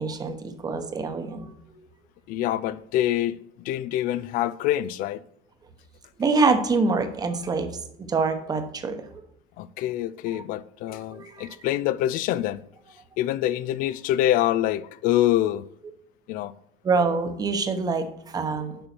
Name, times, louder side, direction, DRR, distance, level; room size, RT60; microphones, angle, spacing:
voice 1, 0.0-1.9 6.2-9.2 10.8-11.6 16.8-18.9, right 4 dB, 25° right, 1.0 m, -26 dB
voice 2, 2.3-5.2 9.6-12.6 13.2-15.7 16.3-16.5, left 13 dB, 55° left, 0.4 m, -25 dB
6.9 x 5.4 x 6.0 m
cardioid pair, 140°, 17 cm